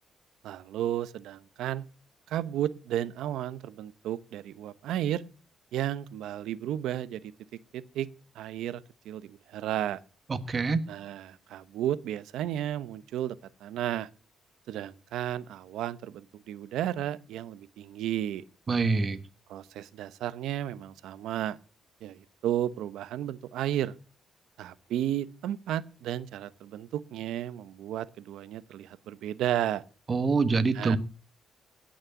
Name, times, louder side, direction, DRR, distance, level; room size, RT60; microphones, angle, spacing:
voice 1, 0.4-1.9 2.3-5.2 5.7-7.3 7.7-8.1 8.3-10.0 10.9-14.1 14.7-18.4 19.5-21.6 22.0-23.9 24.6-29.8 30.7-31.0, right 12 dB, 85° right, 0.8 m, -33 dB
voice 2, 10.3-10.8 18.7-19.2 30.1-31.0, right 4 dB, 35° right, 1.5 m, -25 dB
17.0 x 6.5 x 7.0 m
cardioid pair, 90°, 0 cm